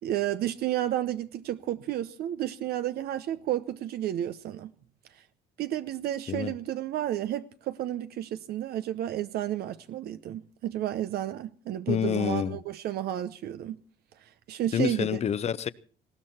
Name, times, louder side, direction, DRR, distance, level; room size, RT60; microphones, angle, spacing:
voice 1, 0.0-4.7 5.1-5.2 5.6-13.8 14.2-15.2, right 12 dB, 70° right, 0.8 m, -32 dB
voice 2, 11.9-12.6 14.7-15.7, left 8 dB, 40° left, 0.8 m, -27 dB
19.5 x 16.5 x 4.3 m
cardioid pair, 110°, 17 cm